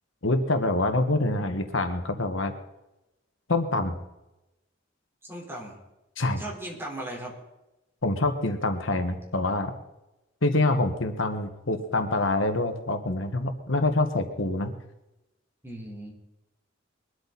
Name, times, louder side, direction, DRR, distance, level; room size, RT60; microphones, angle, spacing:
voice 1, 0.2-2.5 3.5-4.0 6.2-6.4 8.0-9.7 10.4-14.7, left 2 dB, 85° left, 7 dB, 1.6 m, -26 dB
voice 2, 5.2-5.8 6.4-7.3 15.6-16.1, right 1 dB, 15° right, -1 dB, 4.2 m, -37 dB
22.0 x 13.0 x 4.2 m, 0.94 s
head